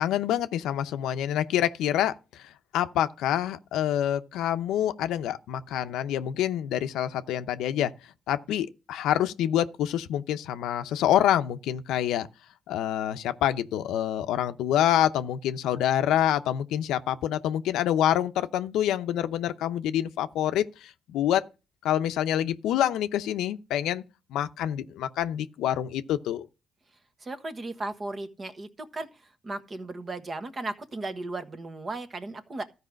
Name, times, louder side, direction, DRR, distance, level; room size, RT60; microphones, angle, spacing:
voice 1, 0.0-7.9 8.3-12.3 12.7-21.5 21.8-24.0 24.3-26.5, left 11 dB, 90° left, 0.7 m, -27 dB
voice 2, 27.2-32.6, right 2 dB, 35° right, 1.4 m, -36 dB
13.5 x 4.9 x 6.3 m
cardioid pair, 90°, 0 cm